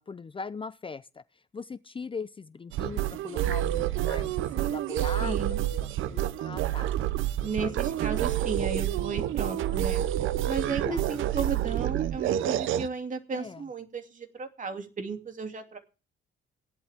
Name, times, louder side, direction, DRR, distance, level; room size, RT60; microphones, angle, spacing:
voice 1, 0.0-5.4 5.7-6.9 7.6-7.7 9.4-9.5 10.9-11.0 13.3-13.6, left 4 dB, 25° left, 0.6 m, -40 dB
sound 1, 2.7-12.9, right 12 dB, 85° right, 0.8 m, -28 dB
voice 2, 5.2-5.6 7.4-10.0 10.5-15.8, right 5 dB, 40° right, 2.9 m, -34 dB
16.5 x 11.0 x 3.6 m
cardioid pair, 90°, 20 cm